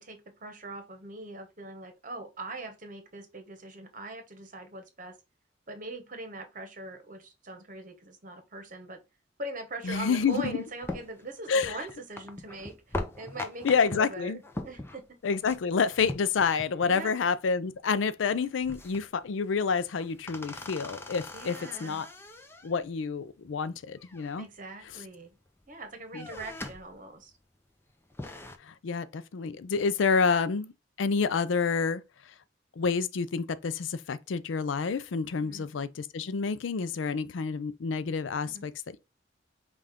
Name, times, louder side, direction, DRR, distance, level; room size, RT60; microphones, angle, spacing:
voice 1, 0.0-5.2 5.7-9.0 9.4-15.2 16.8-17.2 21.3-22.1 24.4-25.4 25.7-27.3 35.4-35.7 38.5-38.6, right 2 dB, 45° right, 1.1 m, -42 dB
voice 2, 9.8-10.6 11.5-11.8 13.6-14.4 15.2-22.1 22.6-24.5 26.1-26.3 28.6-30.7 31.0-32.0 32.8-38.7, left 5 dB, 85° left, 0.4 m, -28 dB
sound 1, 10.3-17.0 17.2-17.3 17.7-18.0 18.3-19.2 19.7-22.8 24.0-24.8 25.3-25.7 26.0-27.0 27.4-27.5 27.9-28.6, left 2 dB, 15° left, 0.5 m, -41 dB
5.5 x 2.5 x 3.5 m
head